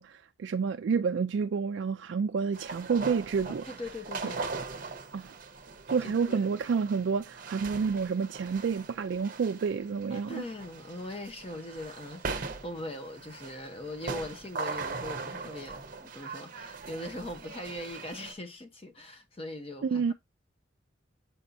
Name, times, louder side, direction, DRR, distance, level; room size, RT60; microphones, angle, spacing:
voice 1, 0.0-3.6 5.1-5.3 5.9-10.4 19.8-20.1, right 5 dB, 60° right, 0.3 m, -29 dB
sound 1, 2.5-18.3, right 4 dB, 45° right, 0.7 m, -40 dB
voice 2, 3.6-4.5 6.0-6.4 10.1-20.1, left 1 dB, 30° left, 0.8 m, -41 dB
6.9 x 5.4 x 2.6 m
head